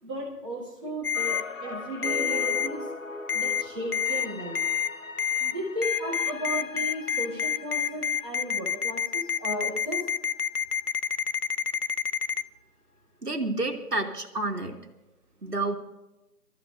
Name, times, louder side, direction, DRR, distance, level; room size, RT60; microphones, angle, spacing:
voice 1, 0.0-2.9 3.3-4.6 5.4-10.1, right 1 dB, 20° right, -7 dB, 3.7 m, -35 dB
Ringtone, 1.0-1.4 2.0-2.7 3.3-3.6 3.9-4.3 4.6-4.9 5.2-5.5 5.8-12.4, left 8 dB, 70° left, 0.7 m, -27 dB
sound 1, 1.1-11.2 11.5-11.6, left 3 dB, 55° left, 1.0 m, -41 dB
voice 2, 13.2-14.7 15.4-15.8, right 2 dB, 70° right, 3 dB, 2.2 m, -29 dB
27.0 x 14.0 x 2.6 m, 1.0 s
figure-of-eight pair, 165°, 47 cm